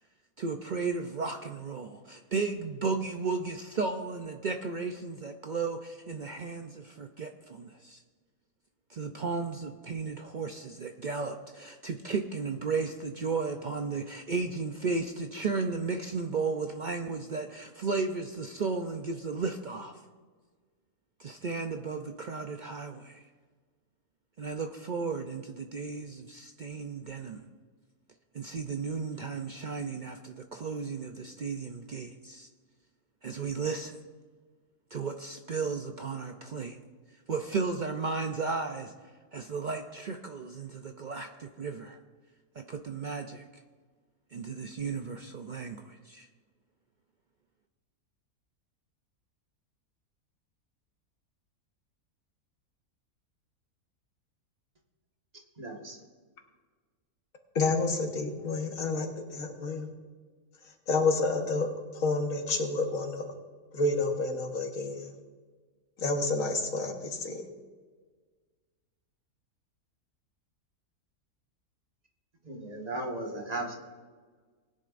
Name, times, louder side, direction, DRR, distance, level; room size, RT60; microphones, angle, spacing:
voice 1, 0.4-8.0 8.9-20.0 21.2-23.3 24.4-27.4 28.3-32.5 33.2-34.0 34.9-36.8 37.3-38.9 39.3-42.0 42.6-43.6 44.3-46.3, right 4 dB, 65° right, 5 dB, 0.4 m, -34 dB
voice 2, 55.6-56.0 72.4-73.7, right 2 dB, 30° right, 0 dB, 1.6 m, -36 dB
voice 3, 57.5-59.1 59.3-59.9 60.9-61.7 62.0-63.2 63.7-65.1 66.0-67.5, left 3 dB, 65° left, 3 dB, 1.7 m, -29 dB
20.0 x 10.0 x 2.5 m, 1.4 s
omnidirectional pair, 1.5 m